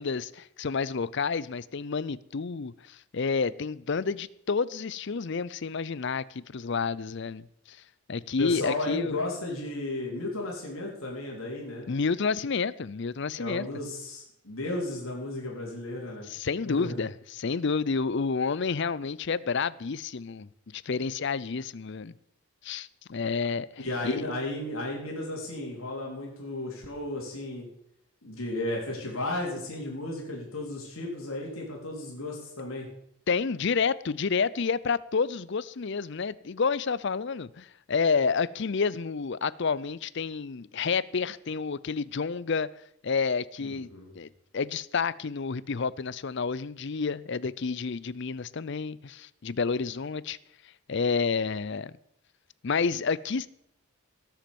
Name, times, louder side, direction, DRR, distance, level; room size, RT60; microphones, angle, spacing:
voice 1, 0.0-7.8 8.1-9.2 11.9-13.7 16.2-22.1 22.6-24.3 33.3-42.7 43.0-43.9 44.1-44.3 44.5-50.4 50.9-52.0 52.6-53.5, left 5 dB, 55° left, 0.5 m, -29 dB
voice 2, 8.4-11.9 13.4-16.3 16.6-17.0 23.8-27.7 28.2-32.9 43.6-44.1, left 2 dB, 70° left, 3.7 m, -34 dB
18.0 x 7.5 x 7.1 m
head